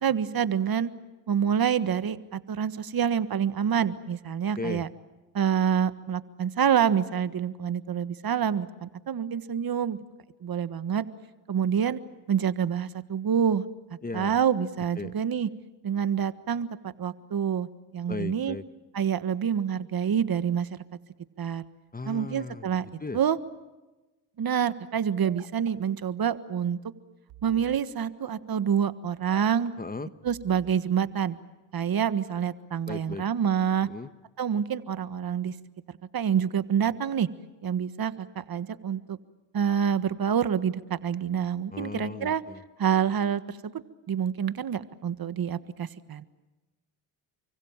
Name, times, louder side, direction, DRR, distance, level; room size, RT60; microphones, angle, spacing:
voice 1, 0.0-0.9 1.3-4.9 5.3-10.0 10.4-11.1 11.5-12.0 12.3-13.7 14.1-15.5 15.8-17.7 17.9-18.6 18.9-20.8 21.4-21.6 22.0-22.8 23.1-23.4 24.4-26.8 27.4-29.7 30.2-31.4 31.7-33.9 34.4-35.5 36.1-37.3 37.6-39.2 39.5-42.4 42.8-46.2, right 8 dB, 50° right, 13 dB, 1.5 m, -27 dB
voice 2, 14.0-14.4 15.0-15.1 18.1-18.6 21.9-22.7 23.0-23.2 29.8-30.1 32.9-33.2 33.8-34.1 41.7-42.6, left 3 dB, 20° left, 12 dB, 1.3 m, -36 dB
sound 1, 25.2-25.7 27.3-27.8 29.3-29.7 30.3-30.8, right 14 dB, 90° right, 1.4 m, -49 dB
29.5 x 25.0 x 7.4 m, 1.1 s
cardioid pair, 75°, 46 cm